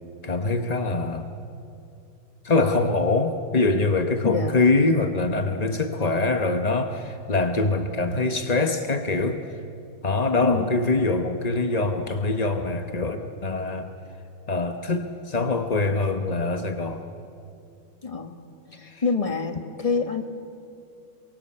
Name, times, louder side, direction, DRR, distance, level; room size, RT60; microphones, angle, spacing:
voice 1, 0.2-1.3 2.4-9.4 10.0-13.9 14.5-17.0 18.8-19.0, left 3 dB, 40° left, 6 dB, 0.5 m, -24 dB
voice 2, 4.2-4.6 10.4-10.7 18.0-18.4 18.7-20.2, left 4 dB, 20° left, 7 dB, 1.2 m, -27 dB
27.0 x 23.5 x 8.7 m, 2.6 s
omnidirectional pair, 2.3 m